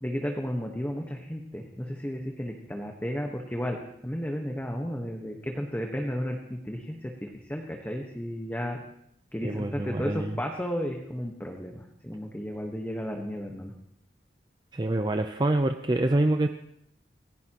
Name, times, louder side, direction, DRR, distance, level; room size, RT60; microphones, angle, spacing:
voice 1, 0.0-3.8 4.0-8.8 9.3-13.7, equal, 10° left, 1 dB, 1.3 m, -33 dB
voice 2, 9.4-10.3 14.7-16.5, right 1 dB, 25° right, 6 dB, 0.6 m, -26 dB
27.0 x 16.0 x 3.0 m, 0.74 s
head